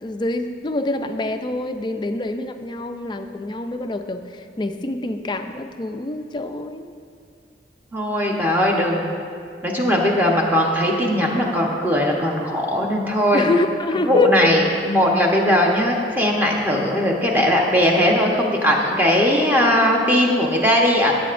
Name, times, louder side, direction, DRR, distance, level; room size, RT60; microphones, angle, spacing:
voice 1, 0.0-6.9 13.3-14.3 19.5-19.6, left 2 dB, 25° left, 7 dB, 0.4 m, -26 dB
voice 2, 7.9-9.2 9.6-13.5 14.1-21.1, left 1 dB, 10° right, -2 dB, 1.0 m, -19 dB
14.0 x 8.4 x 2.5 m, 2.3 s
head